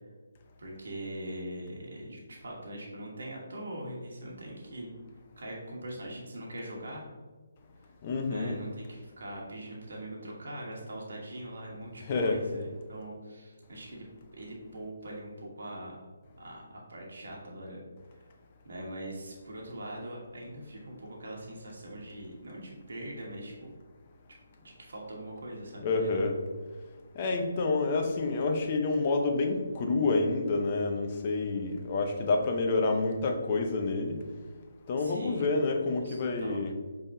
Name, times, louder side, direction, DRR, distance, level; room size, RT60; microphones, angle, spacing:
voice 1, 0.6-4.9 5.4-7.1 8.3-14.1 14.3-16.1 16.4-17.8 18.2-18.3 18.6-23.7 24.6-26.2 34.9-35.4 36.0-36.6, right 1 dB, 70° right, -2 dB, 1.2 m, -42 dB
voice 2, 8.0-8.6 12.0-12.4 25.8-26.4 27.1-34.2 34.9-36.7, left 3 dB, 35° left, 4 dB, 0.7 m, -28 dB
5.3 x 3.5 x 2.7 m, 1.4 s
figure-of-eight pair, 150°, 0 cm